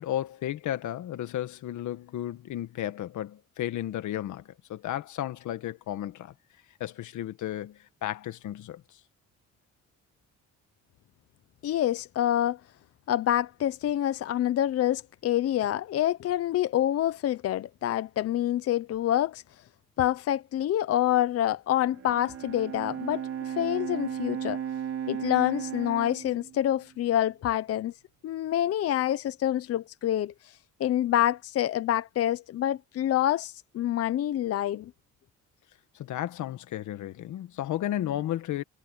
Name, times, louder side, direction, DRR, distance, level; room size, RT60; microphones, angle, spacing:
voice 1, 0.0-4.4 4.7-6.3 6.8-8.8 35.9-38.6, left 12 dB, 85° left, 1.7 m, -33 dB
voice 2, 11.6-12.6 13.1-19.4 20.0-24.6 25.1-27.9 28.2-30.5 30.8-34.9, left 12 dB, 55° left, 0.7 m, -27 dB
Bowed string instrument, 21.8-27.3, right 9 dB, 55° right, 5.1 m, -36 dB
cardioid pair, 150°, 29 cm